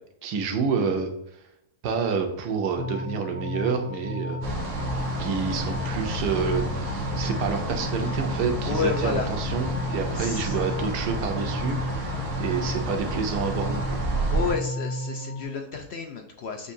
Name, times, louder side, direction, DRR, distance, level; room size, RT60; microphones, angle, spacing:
voice 1, 0.2-1.1 1.8-4.4 5.2-12.1 12.4-14.0, right 5 dB, 85° right, 4 dB, 1.3 m, -28 dB
sound 1, 2.8-15.4, left 1 dB, 55° left, 1.4 m, -33 dB
sound 2, 4.4-14.5, right 1 dB, 50° right, 1.3 m, -31 dB
voice 2, 8.6-9.3 10.1-10.6 14.3-16.7, left 5 dB, 80° left, 3 dB, 0.6 m, -30 dB
6.6 x 2.7 x 2.6 m, 0.83 s
omnidirectional pair, 1.7 m